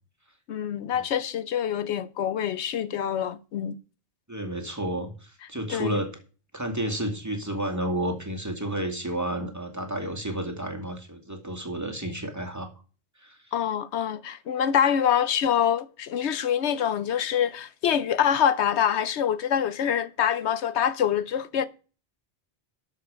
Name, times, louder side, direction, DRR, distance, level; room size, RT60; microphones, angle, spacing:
voice 1, 0.5-3.8 5.7-6.0 13.5-21.7, left 9 dB, 80° left, 1.0 m, -25 dB
voice 2, 4.3-6.1 6.5-12.7 13.2-13.4, right 1 dB, 15° right, 2.4 m, -31 dB
12.5 x 7.7 x 5.0 m
omnidirectional pair, 1.1 m